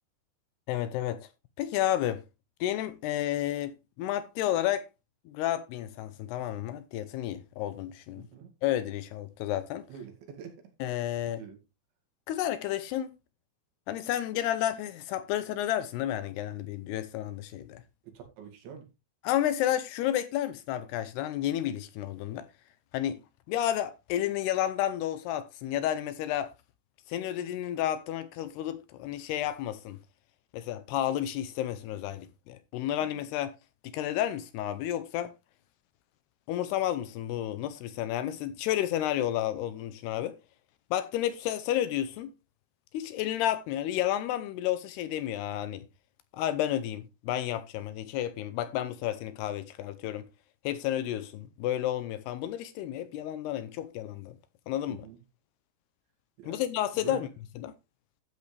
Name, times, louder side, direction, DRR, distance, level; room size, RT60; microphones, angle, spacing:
voice 1, 0.7-1.2 1.6-2.2 2.6-4.9 5.3-8.2 8.6-9.8 10.8-11.4 12.3-13.1 13.9-17.8 19.2-22.5 22.9-23.2 23.5-26.5 27.1-30.0 30.5-33.5 33.8-35.3 36.5-40.3 40.9-42.3 42.9-45.8 46.3-50.2 50.6-54.3 54.7-55.1 56.4-57.3 57.6-57.7, left 12 dB, 80° left, 2.5 m, -31 dB
voice 2, 8.2-8.6 9.9-10.7 11.1-11.6 18.0-18.8 33.0-33.1 54.9-55.2 56.4-56.6 56.9-57.3, right 6 dB, 85° right, 4.7 m, -46 dB
12.5 x 8.3 x 3.3 m
omnidirectional pair, 5.1 m